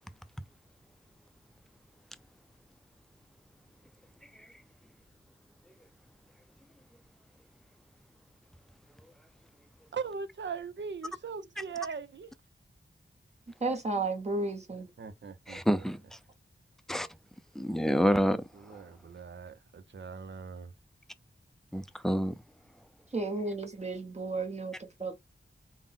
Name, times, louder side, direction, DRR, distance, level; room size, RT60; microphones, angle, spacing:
voice 1, 9.9-12.3 14.7-15.6 18.6-20.7, right 5 dB, 70° right, 0.6 m, -40 dB
voice 2, 13.6-14.9 23.1-25.2, right 3 dB, 35° right, 0.9 m, -33 dB
voice 3, 15.5-16.0 16.9-17.1 17.6-18.5 21.7-22.3, equal, ahead, 0.5 m, -27 dB
3.7 x 2.1 x 3.7 m
wide cardioid pair, 80°, 19 cm